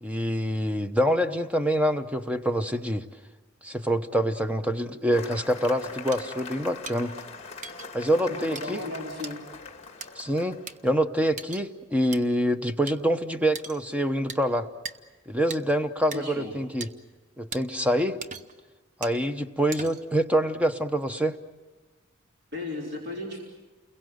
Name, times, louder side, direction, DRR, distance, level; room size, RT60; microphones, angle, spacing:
voice 1, 0.0-3.1 3.6-7.1 7.9-8.8 10.2-14.7 15.3-16.9 17.4-18.2 19.0-21.4, equal, 5° right, 8 dB, 0.9 m, -26 dB
Cheering / Applause, 5.1-10.9, left 4 dB, 30° left, 1.9 m, -42 dB
sound 1, 6.1-6.2 6.9-7.0 7.6-7.9 8.6-8.7 9.2-9.4 10.0-10.1 10.7-10.8 11.4-11.6 12.1-12.2 12.9-13.0 13.6-13.8 14.3-14.4 14.9-15.0 15.5-15.6 16.1-16.2 16.8-16.9 17.5-17.6 18.2-18.6 19.0-19.2 19.7-20.1, right 4 dB, 40° right, 0.9 m, -38 dB
voice 2, 8.3-9.4 16.1-16.5 22.5-23.4, left 2 dB, 55° right, -1 dB, 3.7 m, -35 dB
29.5 x 22.0 x 7.9 m, 1.2 s
head